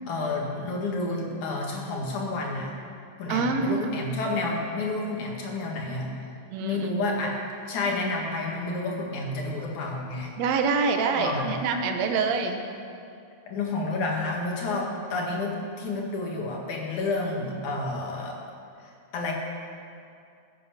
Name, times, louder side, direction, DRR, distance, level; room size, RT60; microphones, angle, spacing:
voice 1, 0.1-2.7 3.2-6.1 6.6-7.4 7.6-10.3 11.2-11.6 13.5-18.4 18.8-19.3, left 2 dB, 75° left, -1 dB, 3.3 m, -30 dB
voice 2, 3.3-3.9 6.5-6.9 10.4-12.6, right 5 dB, 65° right, 5 dB, 2.1 m, -26 dB
15.0 x 9.4 x 7.3 m, 2.4 s
omnidirectional pair, 3.5 m